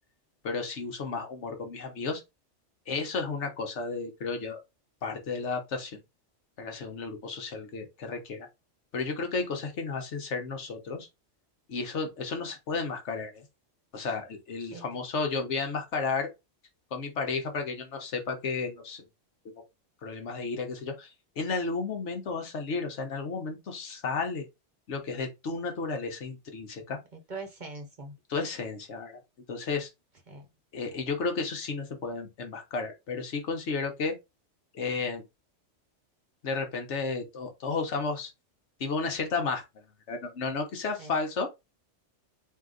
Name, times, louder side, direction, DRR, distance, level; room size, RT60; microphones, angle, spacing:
voice 1, 0.4-2.2 2.9-4.6 5.0-6.0 6.6-8.5 8.9-11.1 11.7-13.5 13.9-16.3 16.9-19.0 19.4-19.5 20.0-24.4 24.9-27.0 28.3-29.2 29.5-29.9 30.7-34.1 34.7-35.2 36.4-38.3 38.8-41.5, left 4 dB, 70° left, 1.2 m, -33 dB
voice 2, 27.1-28.1 30.3-30.5 41.0-41.2, right 3 dB, 45° right, 0.9 m, -42 dB
3.8 x 2.8 x 3.8 m
omnidirectional pair, 1.2 m